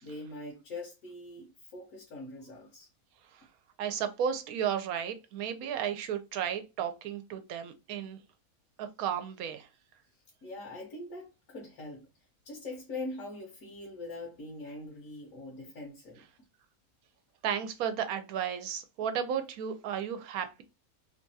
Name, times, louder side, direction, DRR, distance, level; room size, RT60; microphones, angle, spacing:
voice 1, 0.0-2.9 10.4-12.1 12.4-16.2, left 2 dB, 70° left, 1.2 m, -42 dB
voice 2, 3.8-8.2 8.8-9.7 17.4-20.6, right 8 dB, 85° right, 1.0 m, -33 dB
3.1 x 2.3 x 2.6 m
omnidirectional pair, 1.5 m